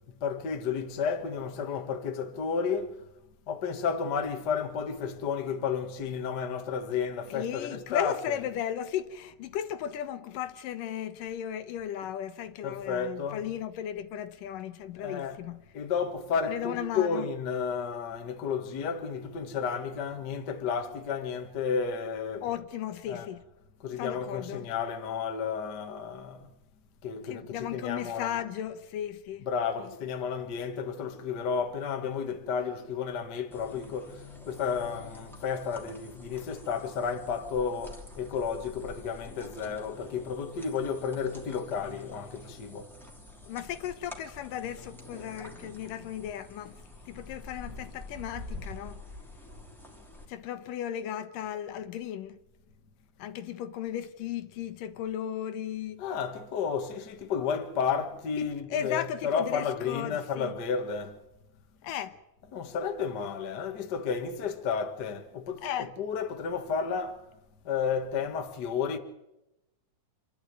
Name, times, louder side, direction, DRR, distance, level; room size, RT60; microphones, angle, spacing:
voice 1, 0.2-3.0 3.5-8.4 12.6-13.5 15.0-15.5 15.7-22.6 23.1-23.3 23.8-26.5 27.0-28.3 29.4-42.9 56.0-61.2 62.4-67.2 67.6-69.0, left 6 dB, 45° left, 1.5 m, -32 dB
voice 2, 7.3-15.6 16.5-17.3 22.4-23.4 23.9-24.7 27.3-29.5 29.8-29.9 43.5-46.8 47.1-49.0 50.3-52.4 53.2-56.0 58.4-60.5 61.8-62.1 65.6-65.9, left 10 dB, 80° left, 2.6 m, -36 dB
sound 1, 33.5-50.3, left 1 dB, ahead, 2.6 m, -47 dB
27.0 x 12.0 x 9.4 m
omnidirectional pair, 3.9 m